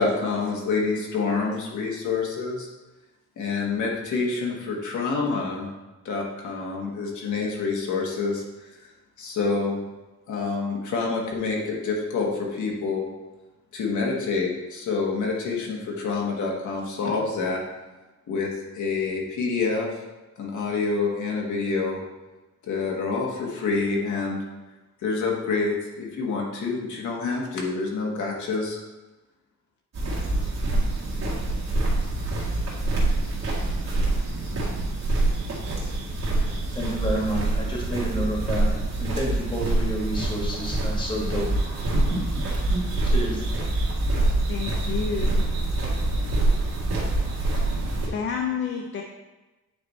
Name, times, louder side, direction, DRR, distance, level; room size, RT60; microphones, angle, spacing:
voice 1, 0.0-2.7 3.4-5.7 6.0-8.4 9.2-9.8 10.3-13.1 13.7-17.6 18.3-19.9 20.4-22.0 22.6-24.4 25.0-28.8, left 4 dB, 80° left, -1 dB, 1.5 m, -27 dB
sound 1, 29.9-48.1, right 2 dB, 60° right, 2.1 m, -25 dB
voice 2, 36.4-38.7 39.0-41.5 41.9-42.2 42.7-42.8 43.1-43.4, right 1 dB, 15° left, -3 dB, 1.5 m, -29 dB
voice 3, 44.5-45.5 47.9-49.0, left 6 dB, 40° left, 2 dB, 0.5 m, -30 dB
8.8 x 3.4 x 4.1 m, 1.1 s
wide cardioid pair, 165°, 29 cm